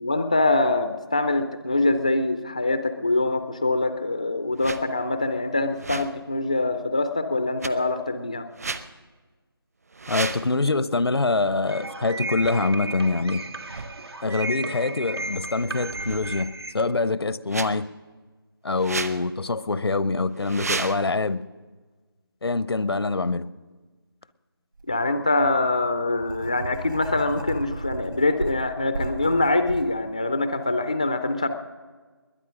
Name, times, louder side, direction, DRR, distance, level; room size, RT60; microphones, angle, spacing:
voice 1, 0.0-8.5 24.9-31.5, left 2 dB, 15° left, 0.3 m, -24 dB
sound 1, 4.6-4.8 5.7-6.2 7.6-7.7 8.5-8.8 9.9-10.5 12.4-12.5 13.7-13.9 15.8-16.5 17.5-17.7 18.8-19.2 20.3-21.0, right 4 dB, 40° right, 0.8 m, -32 dB
voice 2, 10.1-13.4 14.2-17.9 18.6-21.4 22.4-23.5, left 3 dB, 85° left, 0.7 m, -25 dB
sound 2, 11.7-16.7, right 2 dB, 85° right, 1.9 m, -34 dB
Writing, 24.8-24.9 25.4-29.8, right 3 dB, 60° right, 3.9 m, -35 dB
21.0 x 9.4 x 6.2 m
figure-of-eight pair, 170°, 13 cm